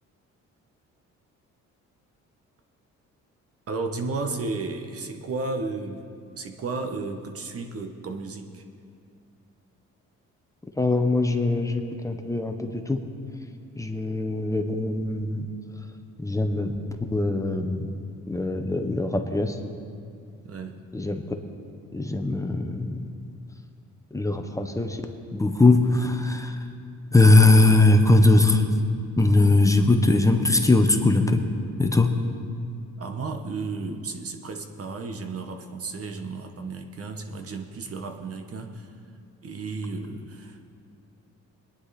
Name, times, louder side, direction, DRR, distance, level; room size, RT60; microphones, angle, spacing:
voice 1, 3.7-6.0 6.4-8.6 20.4-20.8 33.0-38.9 39.4-40.6, right 3 dB, 50° right, 5 dB, 1.3 m, -33 dB
voice 2, 10.8-13.0 13.8-15.5 16.2-16.8 17.0-17.9 18.3-19.6 20.9-21.2 21.9-23.1 24.1-25.0 25.3-26.6 27.1-28.7 29.2-31.4 31.8-32.1, left 2 dB, 10° left, 5 dB, 1.1 m, -21 dB
21.0 x 10.0 x 4.2 m, 2.3 s
cardioid pair, 90°, 30 cm